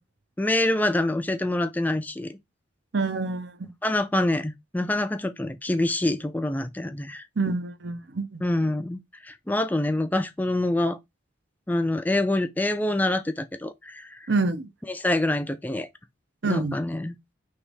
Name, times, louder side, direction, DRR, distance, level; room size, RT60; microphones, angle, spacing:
voice 1, 0.4-2.3 3.8-7.2 8.4-11.0 11.7-14.3 14.9-15.9 16.4-17.1, left 1 dB, 10° left, 0.3 m, -26 dB
voice 2, 2.9-3.7 7.4-8.4 14.3-14.7 16.4-16.8, right 3 dB, 65° right, 0.7 m, -27 dB
3.3 x 3.1 x 4.7 m
head